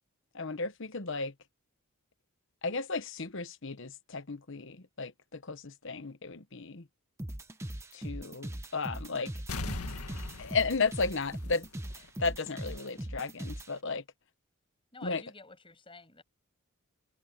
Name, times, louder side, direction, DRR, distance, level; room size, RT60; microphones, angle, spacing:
voice 1, 0.3-1.3 2.6-6.9 7.9-9.3 10.4-11.7 12.2-14.0 15.0-15.2, left 4 dB, 55° left, 1.1 m, -34 dB
sound 1, 7.2-13.7, right 1 dB, 10° right, 1.1 m, -40 dB
sound 2, 9.5-12.1 12.4-12.5, left 2 dB, 85° left, 1.9 m, -40 dB
voice 2, 14.9-16.2, left 3 dB, 25° left, 7.7 m, -50 dB
head